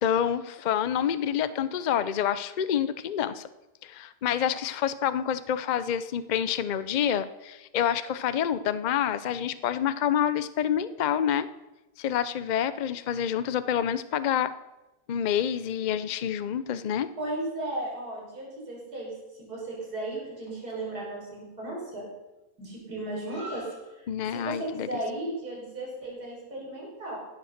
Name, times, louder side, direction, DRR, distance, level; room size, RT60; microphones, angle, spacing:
voice 1, 0.0-3.5 3.8-11.5 12.0-14.5 15.1-17.1 24.1-24.9, left 9 dB, 85° left, 13 dB, 0.4 m, -27 dB
voice 2, 17.2-22.0 22.6-27.2, right 1 dB, 80° right, -4 dB, 5.3 m, -35 dB
15.5 x 7.9 x 6.5 m, 1.0 s
omnidirectional pair, 1.6 m